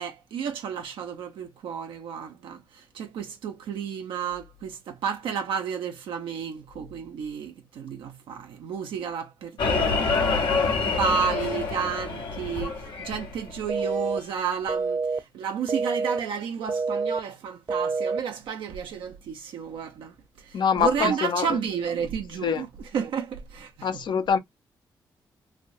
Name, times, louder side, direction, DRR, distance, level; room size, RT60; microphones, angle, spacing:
voice 1, 0.0-24.0, right 7 dB, 85° right, 0.6 m, -32 dB
sound 1, 9.6-13.7 14.0-14.1, left 4 dB, 85° left, 1.2 m, -26 dB
sound 2, 13.7-14.2 14.7-15.2 15.7-16.2 16.7-17.2 17.7-18.2, right 4 dB, 35° right, 0.7 m, -27 dB
voice 2, 20.5-21.5 22.4-22.6 23.8-24.4, left 7 dB, 65° left, 0.7 m, -24 dB
3.3 x 2.7 x 2.4 m
cardioid pair, 65°, 8 cm